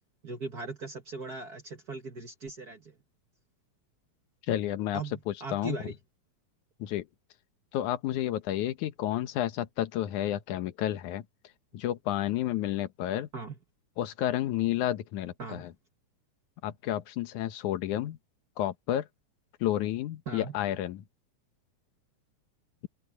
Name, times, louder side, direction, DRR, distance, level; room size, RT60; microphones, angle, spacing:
voice 1, 0.2-2.9 4.9-5.9 13.3-13.5 15.4-15.7 20.3-20.5, right 4 dB, 40° right, 1.5 m, -39 dB
voice 2, 4.5-5.0 5.3-5.9 6.8-7.1 7.7-11.2 11.7-13.3 14.0-15.7 16.6-18.2 18.6-19.1 19.6-21.0, left 12 dB, 80° left, 2.6 m, -31 dB
omnidirectional pair, 3.4 m